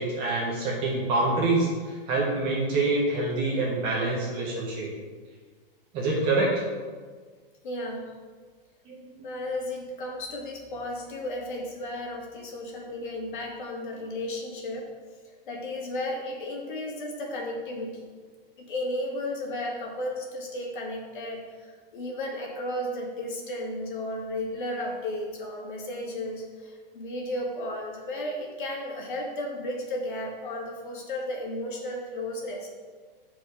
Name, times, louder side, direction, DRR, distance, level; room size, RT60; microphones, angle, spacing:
voice 1, 0.0-4.9 5.9-6.6 8.9-9.2, right 2 dB, 15° right, -3 dB, 0.8 m, -26 dB
voice 2, 7.6-8.1 9.2-14.9 15.5-18.1 18.7-32.7, left 1 dB, 55° left, -1 dB, 2.0 m, -34 dB
8.7 x 4.6 x 4.9 m, 1.5 s
hypercardioid pair, 175°, 30 cm